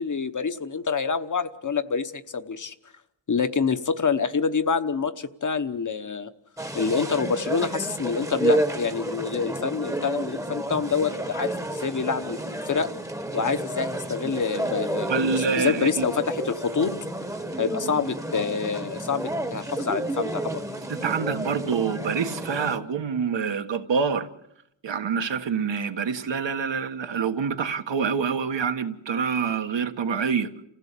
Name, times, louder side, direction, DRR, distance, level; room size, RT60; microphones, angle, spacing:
voice 1, 0.0-2.7 3.3-6.3 6.7-12.9 13.3-16.9 17.6-20.6, left 5 dB, 45° left, 1.0 m, -27 dB
sound 1, 6.6-22.8, right 1 dB, 5° right, 1.1 m, -31 dB
voice 2, 15.1-16.1 20.9-24.3 24.8-30.5, right 6 dB, 75° right, 1.6 m, -26 dB
29.0 x 16.0 x 8.4 m
wide cardioid pair, 170°, 44 cm